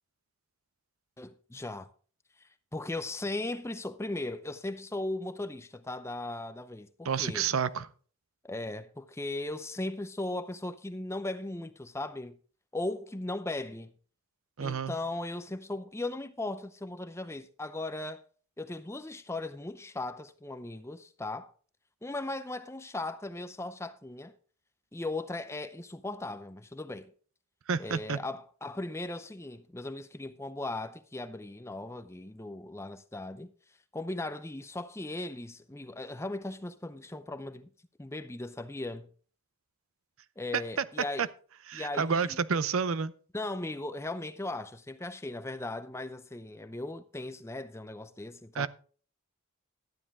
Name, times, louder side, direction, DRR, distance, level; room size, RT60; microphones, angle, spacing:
voice 1, 1.2-1.9 2.7-7.5 8.4-12.4 12.7-13.9 14.6-18.2 18.6-21.5 22.0-24.3 24.9-27.1 27.8-33.5 33.9-37.7 38.0-39.1 40.4-41.3 41.7-42.4 43.3-48.7, left 2 dB, 10° left, 0.5 m, -37 dB
voice 2, 7.0-7.9 14.6-15.0 27.7-28.2 40.5-40.8 41.2-41.3 41.7-43.1 48.5-48.7, right 6 dB, 75° right, 0.6 m, -29 dB
12.5 x 9.7 x 3.6 m
head